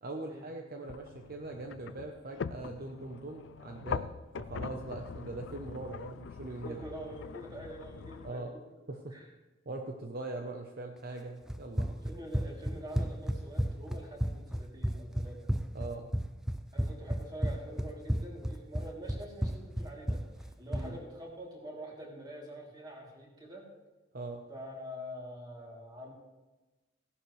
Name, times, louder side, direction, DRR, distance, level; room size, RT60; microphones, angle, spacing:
voice 1, 0.0-6.8 8.2-8.5 8.9-9.2 9.7-11.9 15.7-16.1 20.7-21.0 24.1-24.4, right 2 dB, 55° right, 3 dB, 0.9 m, -41 dB
sound 1, 0.8-8.3, left 6 dB, 70° left, 0.4 m, -42 dB
voice 2, 6.5-8.6 9.1-9.3 11.8-15.5 16.7-23.7 24.5-26.1, equal, 25° right, -3 dB, 3.0 m, -45 dB
Run, 11.5-20.9, equal, 5° right, 0.5 m, -33 dB
16.5 x 11.0 x 3.2 m, 1.2 s
head